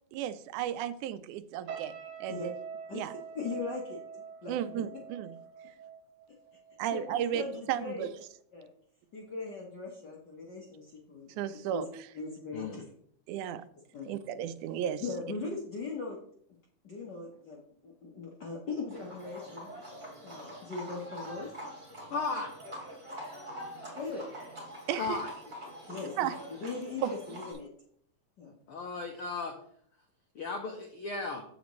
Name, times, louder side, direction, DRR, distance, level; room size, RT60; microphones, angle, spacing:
voice 1, 0.1-1.9 2.2-2.5 2.9-3.2 4.5-5.3 6.8-7.4 7.7-8.1 11.4-11.9 13.3-13.6 14.1-15.0 24.9-25.2 26.2-26.4 27.0-27.1, right 10 dB, 80° right, 13 dB, 1.9 m, -33 dB
sound 1, 1.7-7.0 7.3-7.6, right 7 dB, 65° right, 2.5 m, -45 dB
voice 2, 3.3-4.0 4.4-4.6 6.9-7.0 7.3-8.1 8.5-8.7 9.1-11.9 12.1-12.8 13.9-14.1 15.0-16.2 16.8-19.7 20.2-21.5 24.0-24.3 25.9-26.2 26.5-27.7 28.4-28.6, left 4 dB, 60° left, -2 dB, 1.1 m, -39 dB
Livestock farm animals working animals, 18.9-27.5, equal, 30° right, 4.1 m, -45 dB
voice 3, 22.1-22.5 25.0-25.3 28.7-29.5 30.3-31.4, left 4 dB, 90° left, 4 dB, 1.2 m, -35 dB
15.0 x 5.1 x 3.1 m, 0.65 s
omnidirectional pair, 3.5 m